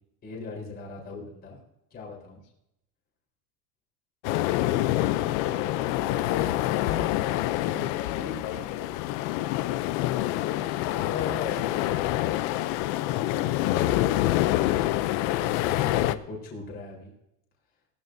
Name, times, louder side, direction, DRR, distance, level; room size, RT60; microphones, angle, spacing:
voice 1, 0.2-1.6 1.9-2.4 12.9-17.1, left 3 dB, 25° left, -2 dB, 3.9 m, -41 dB
voice 2, 4.2-8.9 10.4-12.5, left 7 dB, 70° left, 2 dB, 2.5 m, -37 dB
sound 1, 4.2-16.2, left 15 dB, 45° left, 0.5 m, -26 dB
19.0 x 12.5 x 2.6 m, 0.81 s
cardioid pair, 180°, 41 cm